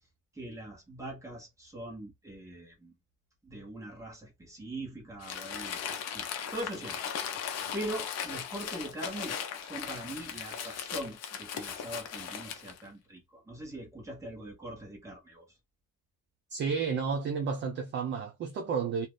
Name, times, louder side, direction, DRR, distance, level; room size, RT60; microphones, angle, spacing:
voice 1, 0.3-2.9 3.4-5.8 6.1-7.0 7.7-15.4, right 1 dB, 10° right, 1.1 m, -42 dB
Crumpling crinkling, 5.2-12.8, left 8 dB, 50° left, 0.7 m, -38 dB
voice 2, 16.5-19.1, right 5 dB, 35° right, 0.4 m, -31 dB
2.7 x 2.4 x 3.2 m
cardioid pair, 170°, 32 cm